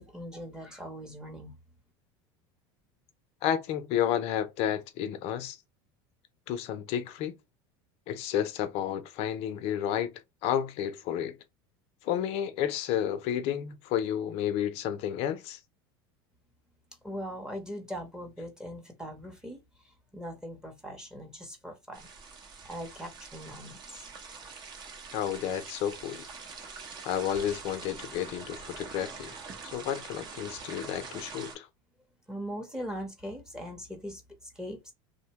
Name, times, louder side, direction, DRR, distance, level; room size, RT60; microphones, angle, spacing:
voice 1, 0.0-1.5 17.0-22.1 22.6-24.1 32.3-34.9, equal, 5° right, 0.8 m, -41 dB
voice 2, 3.4-5.6 6.5-7.3 8.1-10.1 10.4-11.4 12.0-15.6 25.1-26.2 27.0-29.3 29.6-31.7, left 10 dB, 55° left, 0.5 m, -31 dB
sound 1, 21.9-31.5, right 5 dB, 35° right, 0.7 m, -44 dB
2.7 x 2.1 x 2.8 m
supercardioid pair, 120°, 12 cm